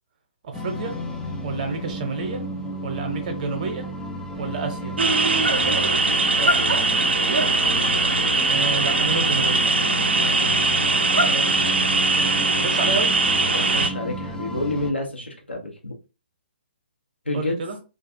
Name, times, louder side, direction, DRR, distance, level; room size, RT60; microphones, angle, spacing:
voice 1, 0.4-0.9 1.4-2.4 2.8-3.9 4.4-5.0 8.5-9.6 12.6-13.1 17.3-17.8, right 4 dB, 40° right, 0.8 m, -29 dB
sound 1, 0.5-14.9, left 1 dB, 10° left, 0.3 m, -33 dB
sound 2, 5.0-13.9, right 3 dB, 75° right, 0.4 m, -20 dB
voice 2, 6.0-6.8 10.9-11.8 13.5-16.0 17.2-17.6, left 2 dB, 90° left, 1.0 m, -30 dB
2.5 x 2.3 x 2.7 m
figure-of-eight pair, 130°, 6 cm